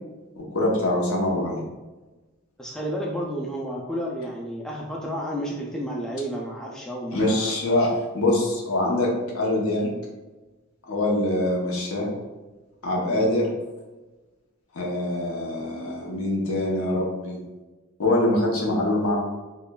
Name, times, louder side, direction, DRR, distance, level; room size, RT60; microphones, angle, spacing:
voice 1, 0.4-1.6 7.1-9.9 10.9-12.1 12.8-13.5 14.7-17.4 18.0-19.2, left 1 dB, 85° left, -2 dB, 0.9 m, -24 dB
voice 2, 2.6-7.6 13.1-13.3, equal, 5° left, -3 dB, 0.3 m, -31 dB
4.8 x 2.3 x 2.3 m, 1.2 s
head